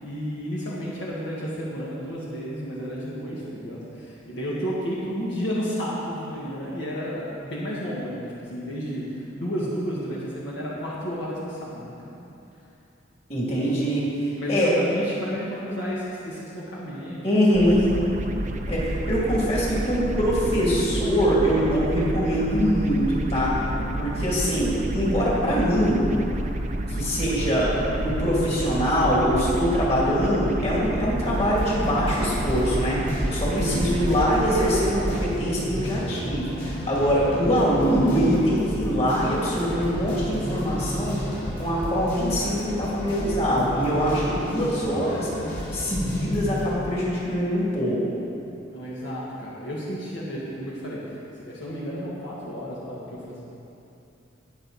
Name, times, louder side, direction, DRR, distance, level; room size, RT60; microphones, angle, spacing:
voice 1, 0.0-12.2 14.3-17.2 17.7-18.1 23.6-24.0 31.1-31.4 33.5-33.9 36.9-37.2 48.7-51.0 51.3-53.4, equal, 65° left, -7 dB, 1.7 m, -32 dB
voice 2, 13.3-14.1 14.5-14.8 17.2-17.8 18.7-23.6 24.0-26.1 26.9-41.2 41.6-45.3 45.7-48.0, equal, 35° left, -6 dB, 2.7 m, -23 dB
sound 1, 17.5-35.3, right 1 dB, 40° right, 0.6 m, -30 dB
sound 2, 31.2-46.7, equal, 50° left, 3.0 m, -32 dB
19.0 x 6.4 x 4.1 m, 2.9 s
head